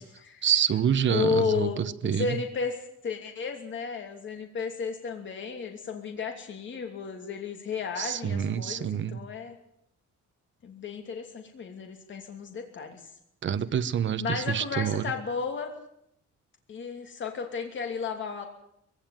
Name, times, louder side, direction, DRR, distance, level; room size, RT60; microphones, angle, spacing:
voice 1, 0.4-2.4 8.0-9.2 13.4-15.1, right 9 dB, 40° right, 12 dB, 1.0 m, -27 dB
voice 2, 1.1-9.6 10.6-13.0 14.2-15.7 16.7-18.5, left 5 dB, 40° left, 4 dB, 2.9 m, -33 dB
21.5 x 16.5 x 9.2 m, 0.74 s
cardioid pair, 170°, 29 cm